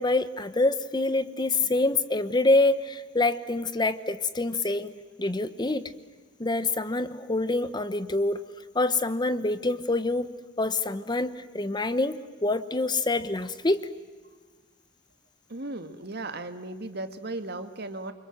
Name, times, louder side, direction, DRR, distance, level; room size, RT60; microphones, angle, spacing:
voice 1, 0.0-4.9 5.2-5.9 6.4-8.4 8.7-10.3 10.6-13.9, left 2 dB, 20° left, 12 dB, 1.0 m, -26 dB
voice 2, 15.5-18.1, right 2 dB, 55° right, 9 dB, 1.9 m, -36 dB
28.0 x 25.0 x 7.9 m, 1.4 s
head